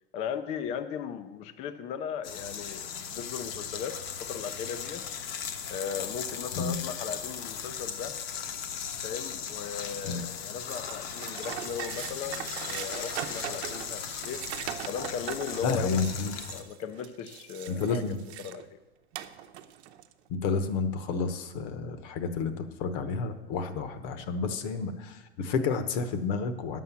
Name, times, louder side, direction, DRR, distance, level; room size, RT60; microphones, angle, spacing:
voice 1, 0.1-5.1 5.7-8.2 9.0-14.4 14.9-16.0 16.5-18.8, left 7 dB, 20° left, 12 dB, 0.4 m, -37 dB
sound 1, 2.2-16.6, left 8 dB, 65° left, 1.1 m, -38 dB
sound 2, 10.7-18.6 19.1-20.1, right 11 dB, 80° right, 0.9 m, -40 dB
voice 2, 15.6-16.3 17.7-18.2 20.3-26.8, left 4 dB, 40° left, 11 dB, 1.0 m, -30 dB
10.5 x 7.6 x 7.1 m, 1.2 s
supercardioid pair, 160°, 33 cm